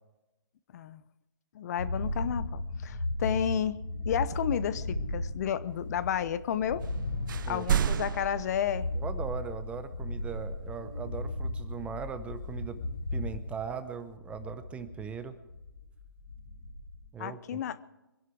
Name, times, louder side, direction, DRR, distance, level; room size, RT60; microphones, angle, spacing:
voice 1, 1.5-3.8 4.1-6.8 7.5-8.8 17.2-17.8, left 9 dB, 45° left, 16 dB, 0.7 m, -31 dB
sound 1, 1.8-17.0, left 1 dB, 90° left, 4.9 m, -36 dB
sound 2, 6.8-7.0 7.3-9.3, right 9 dB, 55° right, 0.5 m, -31 dB
voice 2, 8.9-12.8 13.1-15.4 17.1-17.6, right 6 dB, 10° right, 11 dB, 0.6 m, -39 dB
23.5 x 11.0 x 4.7 m, 0.98 s
hypercardioid pair, 145°, 13 cm